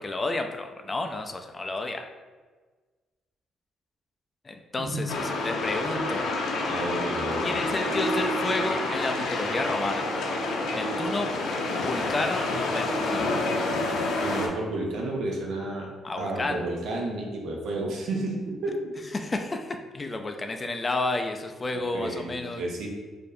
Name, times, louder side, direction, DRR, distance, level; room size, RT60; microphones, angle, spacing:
voice 1, 0.0-2.0 4.5-6.2 7.4-10.1 10.7-11.3 11.7-13.3 16.0-16.6 19.1-22.6, left 2 dB, 25° left, 5 dB, 0.3 m, -31 dB
sound 1, 5.1-14.5, left 2 dB, 80° left, 0.5 m, -28 dB
voice 2, 6.7-7.7 14.2-15.9 16.2-18.9 20.3-20.4 21.9-22.9, right 2 dB, 75° right, 0 dB, 0.7 m, -31 dB
4.5 x 2.6 x 2.6 m, 1.4 s
cardioid pair, 90°, 0 cm